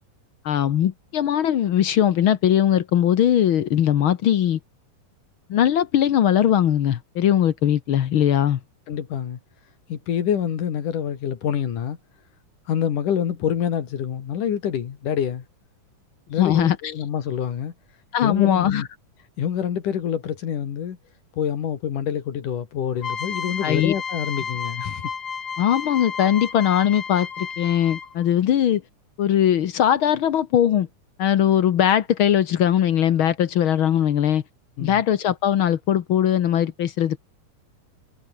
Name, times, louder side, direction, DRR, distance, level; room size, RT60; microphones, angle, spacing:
voice 1, 0.4-4.6 5.5-8.6 16.4-16.8 18.1-18.8 23.6-23.9 25.6-28.8 29.2-30.9 31.2-34.4 34.8-37.2, left 10 dB, 65° left, 1.4 m, -20 dB
voice 2, 8.9-9.4 9.9-12.0 12.7-15.4 16.3-17.7 18.2-18.9 19.4-21.0 21.3-25.1 34.8-35.0, left 9 dB, 80° left, 3.8 m, -26 dB
sound 1, 23.0-28.3, left 6 dB, 45° left, 3.2 m, -32 dB
omnidirectional pair, 3.6 m